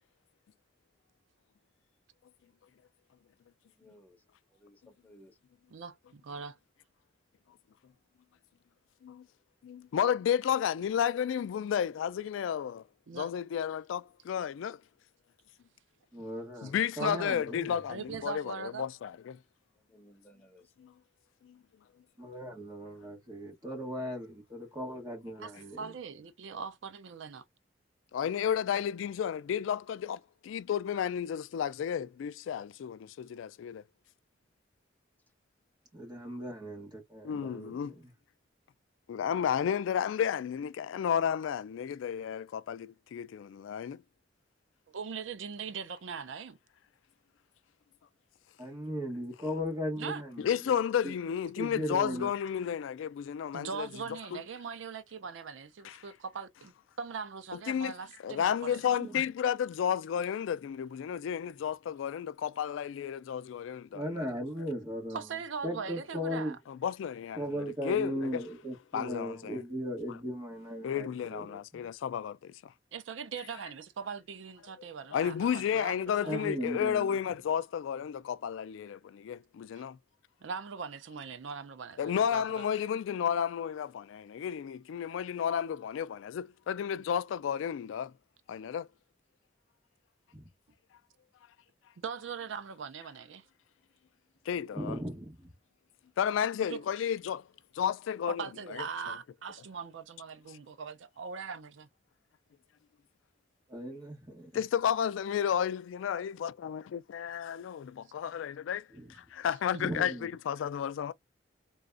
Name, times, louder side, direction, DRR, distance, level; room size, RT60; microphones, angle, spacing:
voice 1, 3.7-4.2 4.5-5.4 19.8-20.7, equal, 10° left, 0.6 m, -59 dB
voice 2, 5.7-6.6 13.1-13.3 17.0-17.4 17.9-18.9 25.4-25.5 25.8-27.4 44.9-46.6 50.0-50.2 53.5-58.8 65.1-66.6 72.9-76.5 79.7-79.8 80.4-82.7 92.0-93.5 96.7-96.8 98.3-101.9, right 6 dB, 80° right, 0.5 m, -41 dB
voice 3, 9.6-12.8 13.1-14.8 16.6-19.4 20.8-20.9 21.4-21.6 28.1-33.8 37.2-38.0 39.1-44.0 50.4-53.9 54.3-54.4 55.8-56.0 57.7-57.9 58.2-64.3 66.7-67.4 67.8-68.4 68.9-69.6 70.8-72.7 75.1-80.0 82.0-88.1 88.5-88.9 94.5-95.0 96.2-97.5 97.7-98.4 98.7-98.8 104.5-108.9 109.2-111.1, left 8 dB, 90° left, 0.3 m, -32 dB
voice 4, 16.1-17.8 22.2-25.9 35.9-37.8 48.6-50.6 51.0-51.2 51.5-52.3 59.0-59.2 63.9-65.3 65.6-66.6 67.3-71.6 76.3-77.2 90.3-90.5 94.7-95.5 103.7-104.5 108.9-109.1 109.8-110.3, equal, 20° right, 1.5 m, -37 dB
4.0 x 2.3 x 2.4 m
head